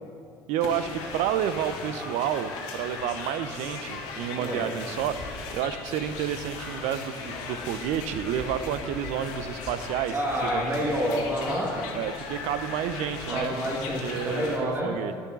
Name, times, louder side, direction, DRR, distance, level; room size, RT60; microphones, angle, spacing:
voice 1, 0.5-10.1 10.4-10.9 11.9-13.6 14.0-15.1, right 9 dB, 65° right, 12 dB, 0.6 m, -30 dB
sound 1, 0.6-14.6, left 4 dB, 75° left, 1.5 m, -37 dB
voice 2, 4.4-4.7 10.1-11.8 13.3-15.0, equal, 20° right, -3 dB, 2.4 m, -28 dB
9.5 x 6.7 x 6.0 m, 2.4 s
hypercardioid pair, 65°, 13 cm